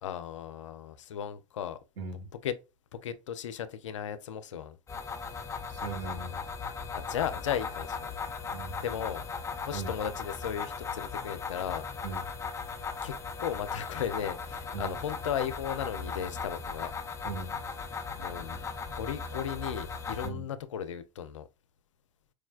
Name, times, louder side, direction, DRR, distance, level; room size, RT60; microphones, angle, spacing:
voice 1, 0.0-1.8 2.4-2.6 2.9-4.8 6.9-8.1 8.8-9.2 9.7-11.9 13.0-16.9 18.2-18.6 18.9-21.5, left 9 dB, 85° left, 0.4 m, -36 dB
voice 2, 2.0-2.3 5.7-6.4 8.5-8.8 9.7-9.9 12.0-12.3 14.7-14.9 17.2-17.6 20.2-20.5, right 4 dB, 75° right, 1.2 m, -38 dB
sound 1, 4.9-20.3, left 5 dB, 20° left, 0.5 m, -37 dB
4.6 x 2.1 x 2.3 m
hypercardioid pair, 95°, 16 cm